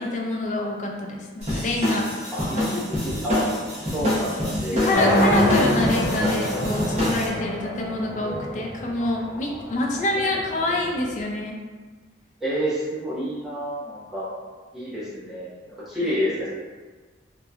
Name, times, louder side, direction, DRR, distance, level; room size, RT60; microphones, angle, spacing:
voice 1, 0.0-2.1 2.5-2.7 4.8-11.6 16.0-16.1, left 2 dB, 40° left, 0 dB, 0.3 m, -27 dB
sound 1, 1.4-7.3, left 1 dB, 35° right, 0.7 m, -27 dB
voice 2, 2.3-3.5 3.9-5.1 10.1-10.4 12.4-14.3 14.7-15.5 15.9-16.5, equal, ahead, -11 dB, 0.7 m, -29 dB
sound 2, 4.9-11.0, left 1 dB, 70° left, 0.7 m, -25 dB
2.8 x 2.2 x 2.3 m, 1.4 s
head